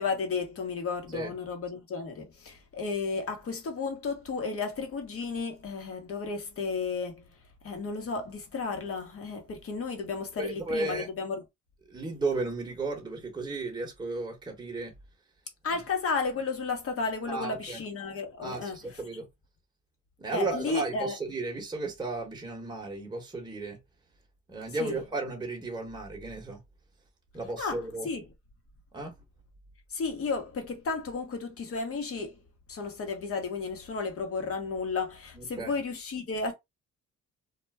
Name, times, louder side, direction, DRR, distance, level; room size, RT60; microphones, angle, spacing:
voice 1, 0.0-7.2 7.6-11.4 15.6-18.8 20.3-21.1 24.8-25.0 27.6-27.8 28.0-28.2 29.9-32.3 32.7-36.5, left 4 dB, 50° left, 1.1 m, -33 dB
voice 2, 10.4-11.1 11.9-14.9 17.3-17.8 18.4-19.2 20.2-23.8 24.5-26.6 27.3-28.1 28.9-29.2 35.3-35.7, right 3 dB, 15° right, 1.0 m, -34 dB
2.4 x 2.1 x 3.3 m
cardioid pair, 90°, 30 cm